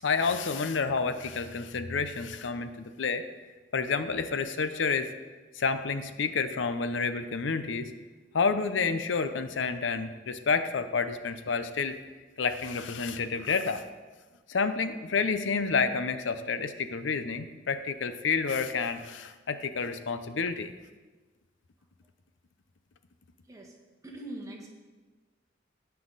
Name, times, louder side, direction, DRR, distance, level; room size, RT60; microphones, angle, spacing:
voice 1, 0.0-3.2 3.7-5.1 5.5-7.9 8.3-12.0 12.4-13.8 14.5-20.7, left 5 dB, 90° left, 10 dB, 0.6 m, -29 dB
voice 2, 24.0-24.7, right 1 dB, 20° right, 0 dB, 1.4 m, -42 dB
16.0 x 5.8 x 4.0 m, 1.3 s
head